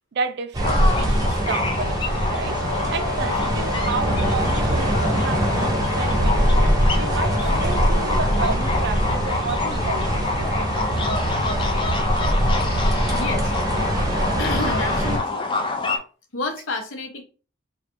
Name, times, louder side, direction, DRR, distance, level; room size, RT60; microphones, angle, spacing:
voice 1, 0.1-2.6 2.9-6.6 7.0-10.9, right 5 dB, 55° right, 0.4 m, -32 dB
sound 1, 0.5-15.2, right 1 dB, 20° right, 0.7 m, -23 dB
sound 2, 0.6-16.0, left 3 dB, 25° left, 0.5 m, -27 dB
Brass instrument, 2.4-8.2, left 4 dB, 5° left, 1.1 m, -33 dB
voice 2, 13.1-13.9 14.4-15.5 16.3-17.2, left 2 dB, 80° left, 0.9 m, -30 dB
3.2 x 2.4 x 4.4 m
head